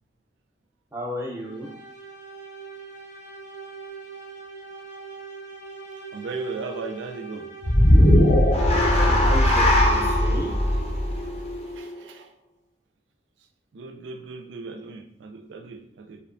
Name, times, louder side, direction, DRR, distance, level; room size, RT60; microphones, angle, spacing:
voice 1, 0.9-1.7 8.9-10.5, equal, 15° right, -2 dB, 0.6 m, -33 dB
sound 1, 1.3-9.7, right 4 dB, 90° left, 0.7 m, -41 dB
voice 2, 6.1-7.5 11.7-12.3 13.7-16.2, right 3 dB, 85° right, 5 dB, 0.4 m, -37 dB
sound 2, 7.6-12.0, left 1 dB, 35° left, 0.5 m, -19 dB
2.6 x 2.2 x 2.5 m, 0.69 s
head